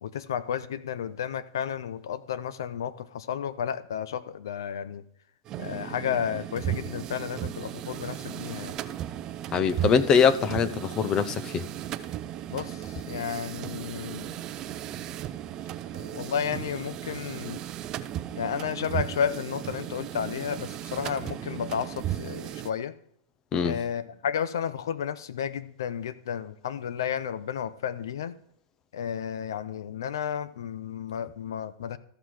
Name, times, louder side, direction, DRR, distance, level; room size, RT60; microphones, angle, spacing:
voice 1, 0.0-5.0 5.6-8.8 12.5-14.4 15.9-17.6 18.4-22.9 23.6-28.3 28.9-32.0, left 8 dB, 80° left, 0.9 m, -32 dB
sound 1, 5.5-22.7, right 12 dB, 30° right, 0.7 m, -36 dB
voice 2, 9.5-11.6 23.5-23.8, left 6 dB, 30° left, 0.7 m, -23 dB
14.0 x 6.0 x 4.9 m
hypercardioid pair, 135°, 2 cm